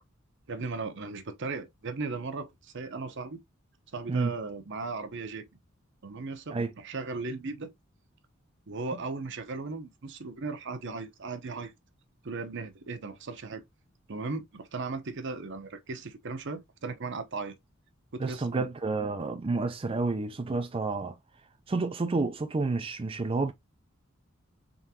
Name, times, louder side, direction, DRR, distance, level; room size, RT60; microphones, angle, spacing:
voice 1, 0.5-3.4 3.9-5.5 6.0-7.7 8.7-11.7 12.2-13.6 14.1-17.5 18.1-18.7, right 3 dB, 60° right, 0.8 m, -37 dB
voice 2, 18.2-21.1 21.7-23.5, right 3 dB, 25° right, 0.4 m, -30 dB
3.8 x 3.7 x 2.8 m
head